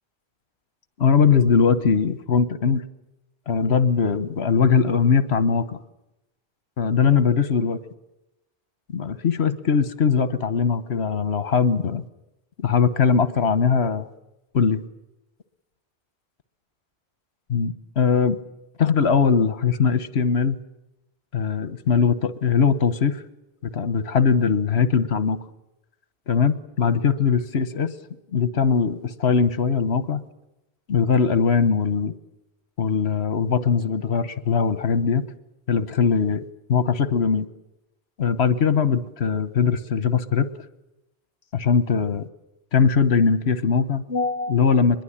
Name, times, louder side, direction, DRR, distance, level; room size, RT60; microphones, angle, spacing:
voice 1, 1.0-2.8 3.5-5.8 6.8-7.8 8.9-12.0 12.6-14.1 14.5-14.8 17.5-18.4 18.8-20.6 21.3-23.2 23.7-25.4 26.3-27.9 28.3-30.2 30.9-32.1 32.8-35.2 35.7-36.4 36.7-37.4 38.2-40.5 41.5-42.3 42.7-45.0, left 6 dB, 80° left, 13 dB, 1.4 m, -20 dB
24.0 x 21.5 x 8.8 m, 0.92 s
omnidirectional pair, 1.1 m